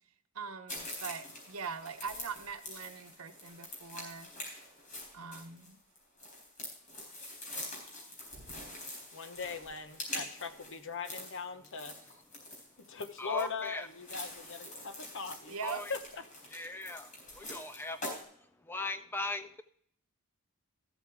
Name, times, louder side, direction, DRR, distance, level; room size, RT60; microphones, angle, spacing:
voice 1, 0.3-4.3 5.1-5.8 15.5-15.8, right 5 dB, 75° right, 8 dB, 1.0 m, -42 dB
sound 1, 0.7-18.2, left 1 dB, 35° left, 4.3 m, -45 dB
voice 2, 9.1-11.9 12.8-15.5 15.9-16.2, left 5 dB, 60° left, 9 dB, 1.0 m, -40 dB
voice 3, 13.2-13.9 15.6-15.9 16.5-18.3 18.6-19.6, left 2 dB, 10° left, 10 dB, 0.3 m, -39 dB
13.5 x 8.2 x 3.5 m, 0.65 s
head